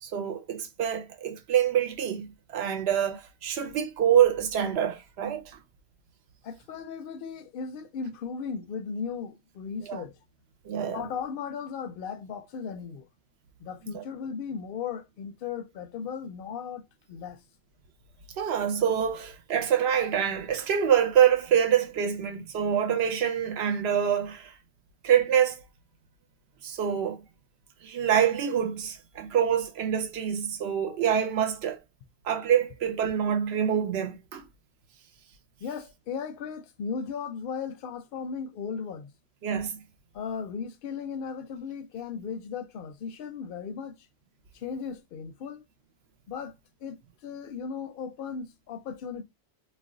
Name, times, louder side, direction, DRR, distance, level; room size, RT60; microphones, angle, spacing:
voice 1, 0.0-5.6 9.9-10.0 10.7-11.1 13.8-14.0 18.4-24.5 25.0-25.6 26.6-27.2 27.8-31.8 32.2-34.4 39.4-39.8, right 9 dB, 70° right, 0.8 m, -26 dB
voice 2, 6.4-10.1 10.9-13.1 13.6-16.8 17.1-17.4 35.6-39.1 40.1-44.0 44.5-45.6 46.3-46.5 46.8-47.0 47.2-49.2, left 6 dB, 60° left, 0.7 m, -36 dB
2.4 x 2.2 x 3.6 m
omnidirectional pair, 1.2 m